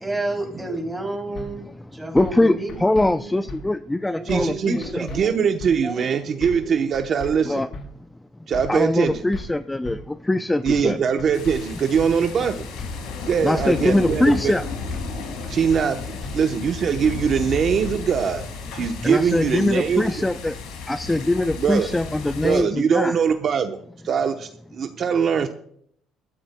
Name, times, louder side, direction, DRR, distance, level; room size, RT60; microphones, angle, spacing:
voice 1, 0.0-1.7 1.9-3.4 4.1-6.8, right 2 dB, 5° right, 1 dB, 3.1 m, -32 dB
sound 1, 1.4-1.5 2.2-2.4 2.7-3.1 3.5-3.6 4.3-4.6 4.8-5.2 5.6-5.7 6.4-6.7 6.9-7.3 7.7-7.9 8.5-8.8 9.1-9.4 9.8-10.0 10.7-10.9 11.2-11.6 12.0-12.1 12.8-13.1 13.3-13.7 14.1-14.2 14.9-15.2 15.4-15.8 16.2-16.3 17.0-17.3 17.6-17.9, left 3 dB, 50° left, 3.9 m, -36 dB
voice 2, 1.6-5.1 7.4-7.7 8.7-11.0 13.0-14.6 19.0-20.6 20.9-23.2, left 1 dB, 10° left, 11 dB, 0.4 m, -22 dB
voice 3, 4.2-7.6 8.5-9.2 10.6-12.6 13.2-14.5 15.5-18.5 18.7-20.1 21.6-21.9 22.4-23.8 24.0-25.5, right 7 dB, 40° right, 6 dB, 0.8 m, -22 dB
sound 2, 11.3-22.6, left 4 dB, 80° left, 5.2 m, -34 dB
21.0 x 13.5 x 2.2 m, 0.65 s
cardioid pair, 130°, 0 cm